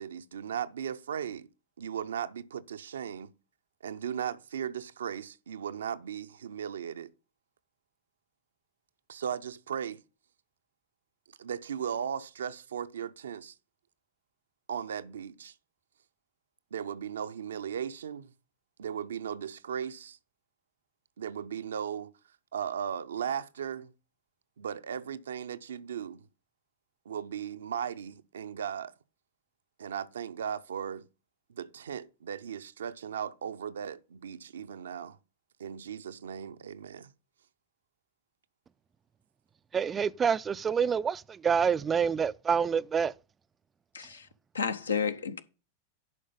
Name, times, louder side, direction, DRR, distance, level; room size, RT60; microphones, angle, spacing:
voice 1, 0.0-1.5 1.8-3.3 3.8-7.1 9.1-10.0 11.4-13.5 14.7-15.5 16.7-18.3 18.8-20.2 21.2-22.1 22.5-23.9 24.6-26.2 27.1-28.9 29.8-31.1 31.5-35.2 35.6-37.1, right 8 dB, 65° right, 0.6 m, -37 dB
voice 2, 39.7-43.1, right 6 dB, 20° right, 0.4 m, -27 dB
voice 3, 43.9-44.3 44.5-45.4, left 6 dB, 75° left, 0.9 m, -31 dB
11.0 x 5.0 x 5.5 m
figure-of-eight pair, 90°, 0 cm